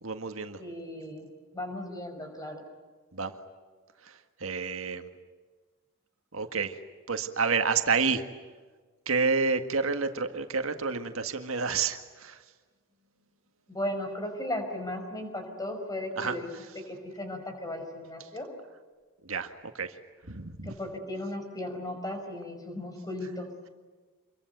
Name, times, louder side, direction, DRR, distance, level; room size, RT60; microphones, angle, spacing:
voice 1, 0.0-0.6 3.1-3.3 4.0-5.1 6.3-6.8 7.1-8.2 9.1-12.4 16.2-16.4 18.2-18.3 19.2-20.0 20.3-20.7, right 5 dB, 80° right, 7 dB, 1.8 m, -29 dB
voice 2, 0.6-2.6 13.7-16.5 16.8-18.5 20.6-23.5, left 1 dB, 15° left, 5 dB, 5.3 m, -36 dB
27.0 x 22.5 x 9.3 m, 1.4 s
head